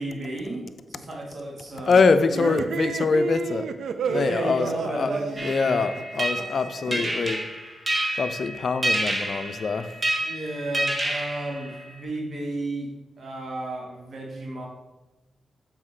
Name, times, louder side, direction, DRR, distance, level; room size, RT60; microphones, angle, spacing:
voice 1, 0.0-2.0 2.4-2.7 4.0-5.9 6.8-7.1 10.2-14.7, right 1 dB, 60° right, 0 dB, 1.5 m, -33 dB
voice 2, 1.9-3.7 4.1-5.1 5.4-7.4 8.2-9.9, left 4 dB, 60° left, 11 dB, 0.4 m, -24 dB
sound 1, 2.3-6.9, right 5 dB, 75° right, 0.4 m, -31 dB
sound 2, 5.4-12.0, right 1 dB, 35° right, 1.6 m, -29 dB
7.2 x 4.8 x 3.3 m, 1.1 s
supercardioid pair, 45°, 0 cm